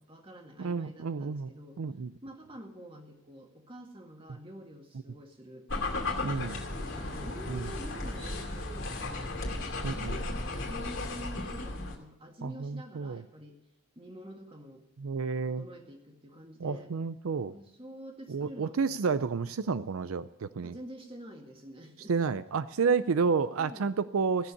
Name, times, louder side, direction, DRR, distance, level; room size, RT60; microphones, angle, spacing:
voice 1, 0.0-1.8 2.2-5.7 6.2-9.3 9.8-13.6 14.0-14.9 15.4-16.9 17.5-19.5 20.6-22.1 23.6-23.9, equal, 25° right, 3 dB, 1.9 m, -48 dB
voice 2, 0.6-2.1 6.2-6.6 7.5-7.7 9.8-10.1 12.4-13.2 15.0-15.6 16.6-17.5 18.3-20.8 22.1-24.5, right 5 dB, 90° right, 14 dB, 0.5 m, -30 dB
sound 1, 5.7-12.0, left 2 dB, 70° left, 2.4 m, -35 dB
sound 2, 6.6-11.7, right 1 dB, 65° right, 6.8 m, -48 dB
16.5 x 7.2 x 9.6 m, 0.85 s
head